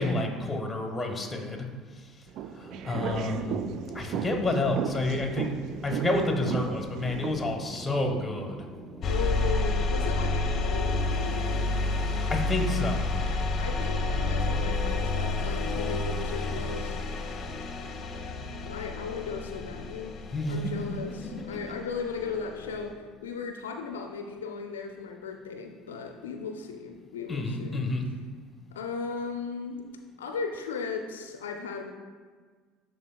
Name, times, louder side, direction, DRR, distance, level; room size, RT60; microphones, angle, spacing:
voice 1, 0.0-1.7 1.9-2.3 2.5-3.6 3.9-5.6 5.8-8.6 12.3-13.2 18.8-18.9 20.3-20.7 21.1-21.6 27.3-28.1, left 2 dB, 20° left, 3 dB, 1.1 m, -30 dB
sound 1, 2.3-7.5, right 7 dB, 60° right, 0.3 m, -35 dB
sound 2, 2.6-9.3, right 1 dB, 15° right, 0.7 m, -44 dB
sound 3, 9.0-22.9, left 2 dB, 45° left, 0.7 m, -30 dB
voice 2, 9.1-11.7 13.6-17.0 18.6-20.2 20.5-27.9 28.7-29.9 30.2-31.9, left 5 dB, 80° left, 4 dB, 0.4 m, -36 dB
11.0 x 3.9 x 2.3 m, 1.5 s
hypercardioid pair, 65°, 0 cm